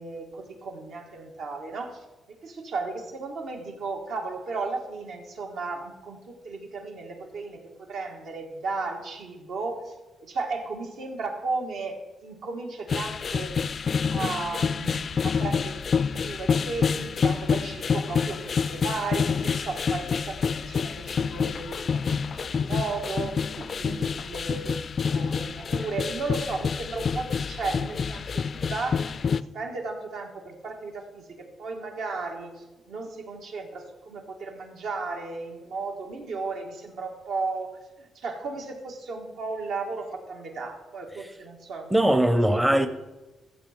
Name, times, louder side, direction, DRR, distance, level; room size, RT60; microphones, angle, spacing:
voice 1, 0.0-13.6 14.1-24.8 25.0-37.7 38.0-41.9 42.5-42.9, right 3 dB, 75° right, 2 dB, 1.9 m, -35 dB
sound 1, 12.9-29.4, left 6 dB, 45° left, 0.3 m, -27 dB
voice 2, 41.9-42.9, right 1 dB, 10° right, 9 dB, 0.6 m, -21 dB
15.0 x 7.0 x 4.4 m, 1.1 s
cardioid pair, 120°, 0 cm